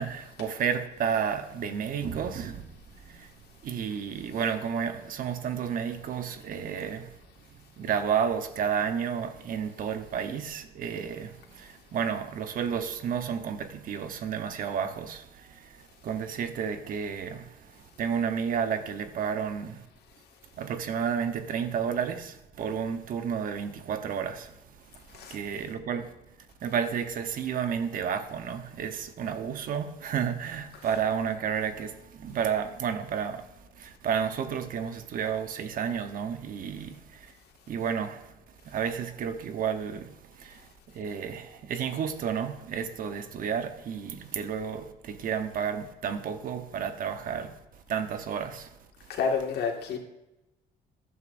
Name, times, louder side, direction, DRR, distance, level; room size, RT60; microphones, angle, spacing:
voice 1, 0.0-2.7 3.0-3.3 3.6-7.2 7.8-19.8 20.6-26.1 26.6-37.3 37.7-38.3 38.6-47.6 47.9-48.8, right 7 dB, 55° right, 1.0 m, -31 dB
voice 2, 49.1-50.0, left 5 dB, 75° left, 1.9 m, -29 dB
14.5 x 11.0 x 2.6 m
cardioid pair, 110°, 17 cm